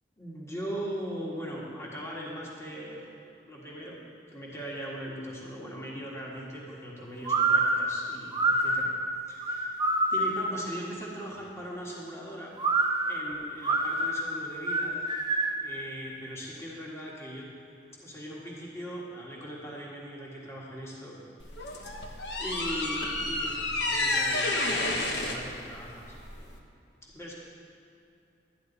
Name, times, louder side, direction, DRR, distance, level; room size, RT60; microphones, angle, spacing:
voice 1, 0.2-3.1 3.5-4.0 4.3-8.9 9.2-9.8 10.1-12.5 13.0-15.2 15.6-17.5 18.0-21.2 21.6-26.2 27.1-27.3, equal, 15° left, -5 dB, 1.6 m, -40 dB
sound 1, 7.3-10.6 12.6-15.7, right 2 dB, 25° right, 0.7 m, -27 dB
sound 2, 21.4-26.6, left 2 dB, 75° left, 1.1 m, -30 dB
11.5 x 10.5 x 4.0 m, 2.7 s
head